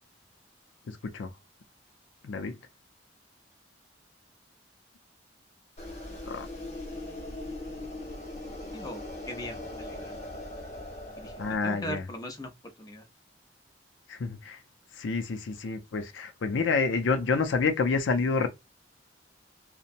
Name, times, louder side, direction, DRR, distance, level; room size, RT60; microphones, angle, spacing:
voice 1, 0.9-1.3 2.2-2.6 6.3-6.5 11.4-12.1 14.1-14.6 14.9-18.5, left 4 dB, 85° left, 0.4 m, -28 dB
sound 1, 5.8-11.6, left 1 dB, 40° left, 0.9 m, -40 dB
voice 2, 8.7-10.2 11.2-11.3 11.6-12.5 12.8-13.0, equal, 20° left, 0.5 m, -39 dB
2.7 x 2.1 x 2.5 m
head